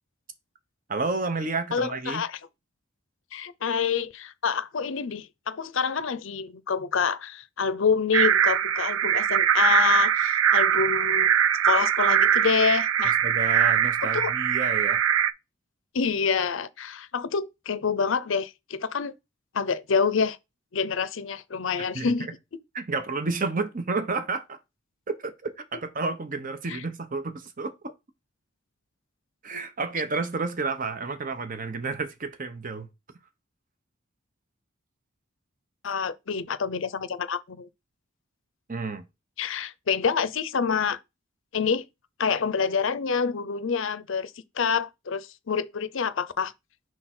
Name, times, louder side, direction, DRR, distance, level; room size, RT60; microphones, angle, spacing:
voice 1, 0.9-2.2 13.0-15.0 21.9-22.3 22.7-24.6 25.1-27.7 29.4-32.9 38.7-39.1, right 3 dB, 40° right, 0.9 m, -30 dB
voice 2, 1.7-2.4 3.3-11.3 11.6-13.1 14.1-14.3 15.9-19.1 19.5-20.4 20.7-22.3 26.7-26.8 35.8-37.7 39.4-41.0 41.5-41.8 42.2-44.3 44.6-46.5, left 6 dB, 70° left, 0.6 m, -27 dB
sound 1, 8.1-15.3, right 9 dB, 85° right, 0.5 m, -22 dB
6.1 x 3.8 x 4.3 m
head